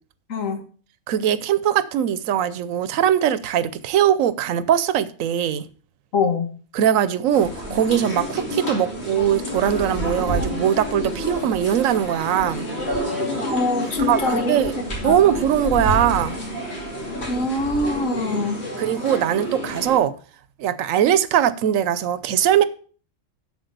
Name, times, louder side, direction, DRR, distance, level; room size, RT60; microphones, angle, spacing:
voice 1, 0.3-0.6 6.1-6.5 13.5-15.2 17.3-18.6, left 3 dB, 85° left, 1.7 m, -24 dB
voice 2, 1.1-5.7 6.7-12.7 14.1-14.7 15.0-16.4 18.8-20.1 20.6-22.6, right 10 dB, 85° right, 1.1 m, -21 dB
sound 1, 7.3-20.0, left 1 dB, 55° left, 2.7 m, -29 dB
8.0 x 6.9 x 6.6 m
omnidirectional pair, 1.3 m